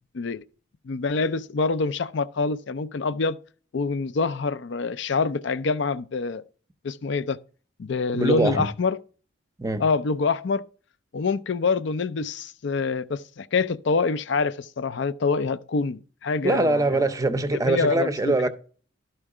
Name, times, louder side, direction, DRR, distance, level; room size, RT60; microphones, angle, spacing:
voice 1, 0.8-3.4 3.7-6.4 6.8-7.4 7.8-9.0 9.8-10.6 11.1-17.1 17.7-18.3, left 4 dB, 60° left, 0.4 m, -26 dB
voice 2, 8.1-8.7 9.6-9.9 16.4-18.5, right 2 dB, 15° right, 0.6 m, -23 dB
12.5 x 4.4 x 4.8 m
head